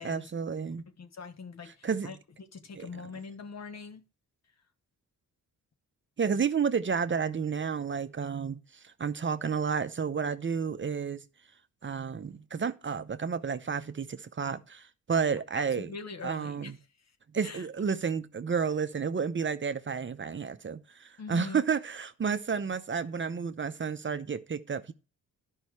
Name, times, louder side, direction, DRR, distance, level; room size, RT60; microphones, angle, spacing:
voice 1, 0.0-0.9 1.6-2.2 2.7-3.0 6.2-11.2 11.8-15.9 16.2-16.8 17.3-24.9, right 6 dB, 35° right, 0.8 m, -31 dB
voice 2, 1.0-4.0 15.9-16.7 17.4-17.6 21.2-21.6, left 4 dB, 55° left, 1.4 m, -43 dB
11.5 x 5.5 x 4.7 m
cardioid pair, 70°, 33 cm